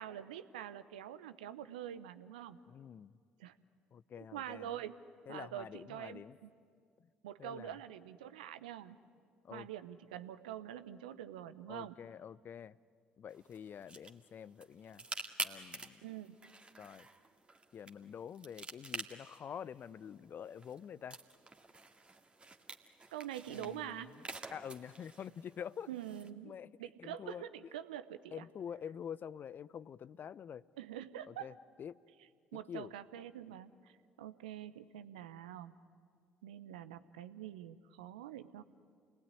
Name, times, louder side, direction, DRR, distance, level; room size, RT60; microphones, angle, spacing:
voice 1, 0.0-2.6 3.4-3.5 4.2-5.0 5.3-6.5 7.2-9.0 9.5-12.0 16.0-16.4 23.1-24.1 25.9-26.5 26.8-28.4 30.8-31.5 32.5-35.7 36.4-38.6, right 11 dB, 75° right, 12 dB, 0.8 m, -45 dB
voice 2, 2.7-3.1 3.9-4.7 5.3-6.4 7.4-7.8 9.4-9.7 11.7-12.8 13.2-15.0 15.4-16.0 16.8-17.1 17.7-21.2 23.5-24.1 24.5-25.9 26.4-26.7 27.0-27.5 28.3-30.6 31.3-32.0 32.7-32.9, left 8 dB, 45° left, 20 dB, 0.6 m, -47 dB
sound 1, 13.3-26.3, right 2 dB, 25° right, 2.1 m, -49 dB
28.0 x 19.5 x 9.9 m, 2.1 s
figure-of-eight pair, 55°, 5 cm